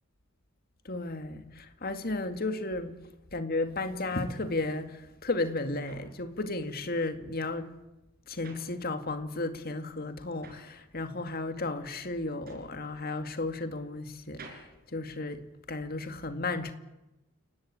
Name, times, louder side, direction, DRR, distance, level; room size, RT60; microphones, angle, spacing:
voice 1, 0.8-3.0 3.3-7.7 8.3-16.7, left 2 dB, 45° left, 2.1 m, -34 dB
sound 1, 5.9-9.4 9.7-15.9, right 3 dB, 45° right, 5.8 m, -54 dB
29.5 x 18.5 x 8.9 m
head